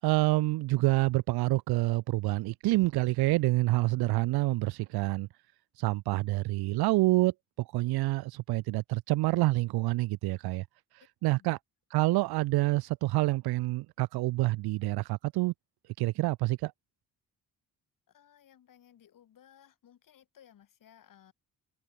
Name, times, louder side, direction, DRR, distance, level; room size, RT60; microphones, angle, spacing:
voice 1, 0.0-5.3 5.8-10.6 11.2-11.6 11.9-15.5 16.0-16.7, right 19 dB, 90° right, 0.6 m, -27 dB
voice 2, 11.2-11.6 18.1-21.3, left 10 dB, 60° left, 7.2 m, -59 dB
cardioid pair, 130°, 37 cm